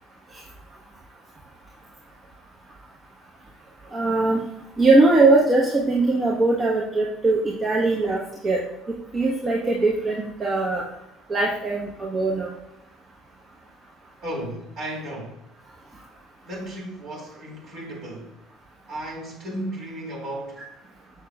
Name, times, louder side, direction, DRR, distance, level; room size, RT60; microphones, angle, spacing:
voice 1, 3.9-4.4 4.8-8.6 9.1-10.8 11.3-12.5, right 2 dB, 30° right, 1.1 m, -20 dB
voice 2, 14.2-15.4 16.4-18.4 18.9-20.6, right 1 dB, 50° right, 2.4 m, -34 dB
7.0 x 6.5 x 2.4 m
figure-of-eight pair, 60°, 0 cm